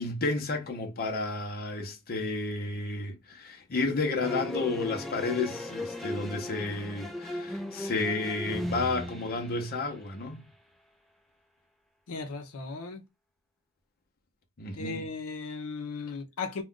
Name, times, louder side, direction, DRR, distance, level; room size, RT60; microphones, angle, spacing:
voice 1, 0.0-10.4 14.6-15.0, left 3 dB, 45° left, 0.7 m, -32 dB
sound 1, 4.2-10.1, left 1 dB, ahead, 0.3 m, -37 dB
voice 2, 12.1-13.0 14.7-16.6, left 4 dB, 85° left, 0.6 m, -36 dB
2.4 x 2.2 x 3.6 m
head